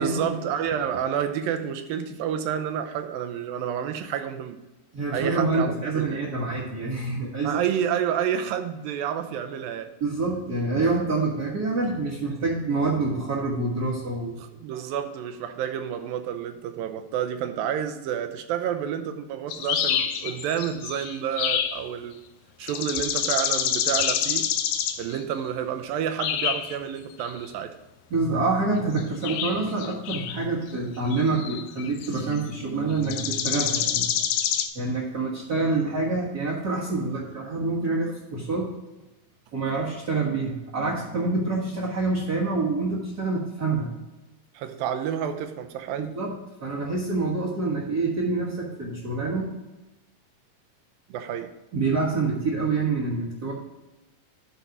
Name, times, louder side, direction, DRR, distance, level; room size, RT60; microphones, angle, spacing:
voice 1, 0.0-4.6 5.1-6.2 7.4-9.9 14.4-22.2 22.6-24.5 25.0-27.7 44.5-46.1 51.1-51.5, right 9 dB, 85° right, 8 dB, 2.5 m, -29 dB
voice 2, 4.9-7.6 10.0-14.4 28.1-34.0 34.7-38.7 39.5-43.9 46.0-49.5 51.7-53.5, right 3 dB, 55° right, -6 dB, 1.0 m, -26 dB
sound 1, 19.5-21.8 22.6-25.2 26.2-26.8 27.2-27.4 29.0-30.4 31.1-32.5 33.0-34.7, left 9 dB, 80° left, 2.2 m, -27 dB
10.0 x 4.0 x 5.8 m, 1.0 s
omnidirectional pair, 4.1 m